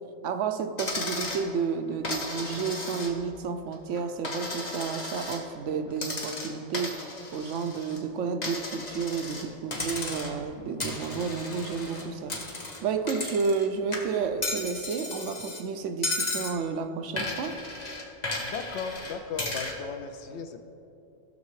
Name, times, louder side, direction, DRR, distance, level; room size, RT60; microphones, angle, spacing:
voice 1, 0.2-12.4 12.8-17.6, right 5 dB, 70° right, 7 dB, 0.9 m, -31 dB
Coin (dropping), 0.8-1.5 2.0-3.4 3.7-5.4 6.0-8.0 8.4-9.5 9.7-10.4 10.8-13.7 13.9-15.6 16.0-16.6 17.2-19.8, left 2 dB, 35° left, 1.1 m, -34 dB
voice 2, 18.4-20.6, left 5 dB, 65° left, 7 dB, 0.8 m, -36 dB
16.0 x 6.6 x 3.1 m, 2.9 s
omnidirectional pair, 1.3 m